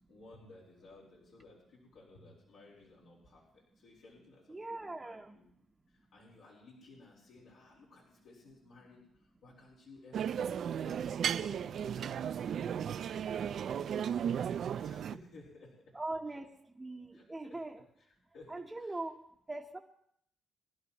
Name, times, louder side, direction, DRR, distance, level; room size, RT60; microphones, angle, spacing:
voice 1, 0.1-5.5 5.9-15.7 17.1-17.6 18.3-19.0, left 2 dB, 80° left, -5 dB, 4.1 m, -57 dB
voice 2, 4.5-5.4 15.9-16.5 16.8-17.8 18.5-19.8, right 2 dB, 15° right, 0 dB, 0.9 m, -41 dB
sound 1, 10.1-15.2, right 8 dB, 65° right, 0.4 m, -35 dB
23.0 x 11.0 x 3.0 m, 0.71 s
cardioid pair, 90°, 0 cm